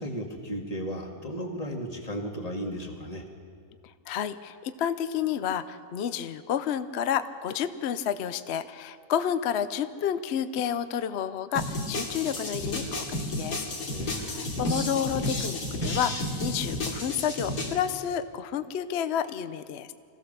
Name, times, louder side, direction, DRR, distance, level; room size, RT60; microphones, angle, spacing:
voice 1, 0.0-3.2 13.9-14.4, equal, 25° left, 1 dB, 2.0 m, -35 dB
voice 2, 4.1-13.7 14.1-19.9, left 9 dB, 55° left, 12 dB, 0.7 m, -30 dB
sound 1, 11.6-17.7, left 1 dB, 85° left, 3.3 m, -32 dB
24.0 x 16.0 x 6.7 m, 2.2 s
omnidirectional pair, 1.7 m